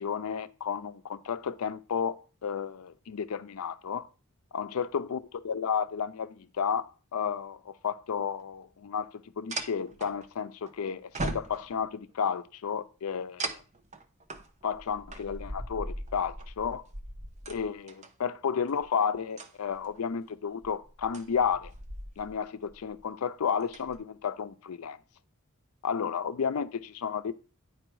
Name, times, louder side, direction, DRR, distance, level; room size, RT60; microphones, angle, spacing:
voice 1, 0.0-4.1 4.5-13.6 14.6-16.8 17.5-21.7 22.2-25.0 25.8-27.3, left 7 dB, 85° left, 0.5 m, -32 dB
sound 1, 8.4-8.5 9.5-10.7 11.1-12.0 13.4-18.1 18.7-18.9 19.2-20.0 20.6-22.4 22.7-23.0 23.5-24.0, right 2 dB, 35° right, 0.8 m, -39 dB
9.9 x 4.7 x 4.6 m
head